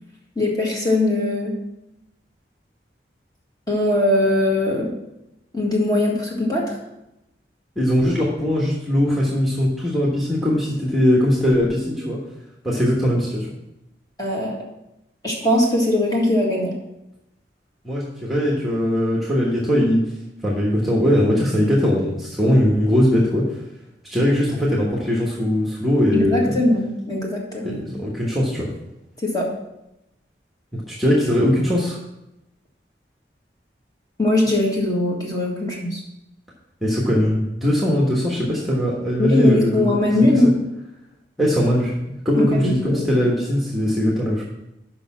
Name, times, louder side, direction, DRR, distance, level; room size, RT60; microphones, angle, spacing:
voice 1, 0.3-1.6 3.7-4.9 5.5-6.7 14.2-14.6 15.2-16.7 26.1-27.8 29.2-29.5 34.2-36.0 39.2-40.5 42.4-43.1, left 1 dB, 20° left, -3 dB, 1.7 m, -20 dB
voice 2, 7.8-12.2 12.6-13.5 17.8-20.0 20.4-23.4 24.0-26.6 27.6-28.7 30.7-32.0 36.8-40.0 40.3-40.4 41.4-41.9 42.2-44.4, equal, ahead, -4 dB, 1.3 m, -20 dB
6.6 x 5.6 x 6.0 m, 0.89 s
head